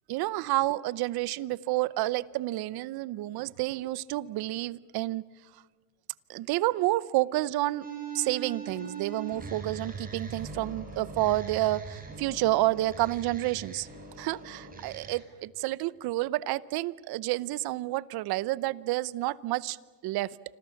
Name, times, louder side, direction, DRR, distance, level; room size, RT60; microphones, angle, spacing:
voice 1, 0.1-5.2 6.3-7.8 8.1-13.9 14.2-19.8 20.0-20.4, right 17 dB, 55° right, 19 dB, 0.9 m, -29 dB
sound 1, 7.8-15.2, right 4 dB, 20° right, 6.8 m, -41 dB
27.0 x 26.5 x 7.1 m, 1.4 s
cardioid pair, 120°, 45 cm